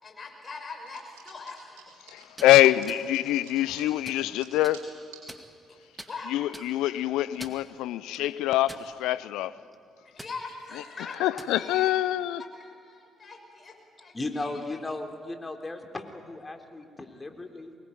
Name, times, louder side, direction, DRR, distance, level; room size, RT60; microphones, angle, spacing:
voice 1, 0.0-2.4 5.7-5.8 6.1-6.4 10.0-11.1 11.5-11.9 12.5-13.7 14.0-14.6, left 4 dB, 40° left, 6.6 m, -42 dB
sound 1, 0.9-5.3 5.6-7.6, right 7 dB, 80° right, 5.3 m, -52 dB
voice 2, 2.1-4.9 6.3-9.5 11.2-12.4, left 14 dB, 75° left, 0.7 m, -24 dB
sound 2, 2.2-2.5 2.9-3.0 3.6-4.2 4.6-4.8 5.3-5.7 6.0-6.1 6.5-6.7 7.2-7.7 8.1-8.2 8.7-9.2 9.6-9.8 10.2-10.3 11.1-11.6, right 1 dB, 10° right, 2.3 m, -44 dB
voice 3, 14.1-17.8, left 2 dB, 25° left, 3.7 m, -36 dB
24.0 x 20.5 x 9.5 m
hypercardioid pair, 45°, 0 cm